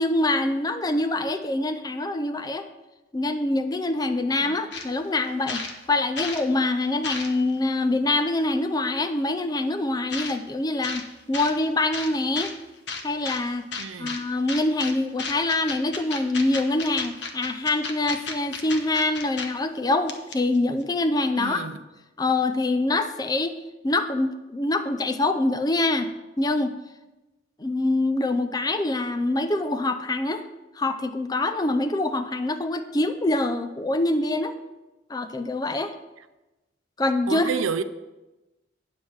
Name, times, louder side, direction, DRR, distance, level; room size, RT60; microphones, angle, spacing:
voice 1, 0.0-2.6 3.1-12.5 13.0-13.6 14.0-21.7 22.2-23.5 23.8-26.8 27.6-30.5 30.8-34.5 35.1-35.9 37.0-37.5, left 2 dB, 20° left, 0.5 m, -25 dB
sound 1, 4.7-4.9 5.2-6.4 6.8-7.6 8.4-8.5 10.1-10.4 10.8-11.0 11.3-11.5 11.9-12.5 12.9-13.4 13.7-14.2 14.5-14.9 15.2-19.5 19.8-19.9 20.1-20.6, left 4 dB, 60° left, 1.0 m, -33 dB
voice 2, 13.8-14.2 21.4-21.8 37.3-37.8, right 5 dB, 90° right, 0.6 m, -29 dB
9.3 x 7.5 x 4.7 m
head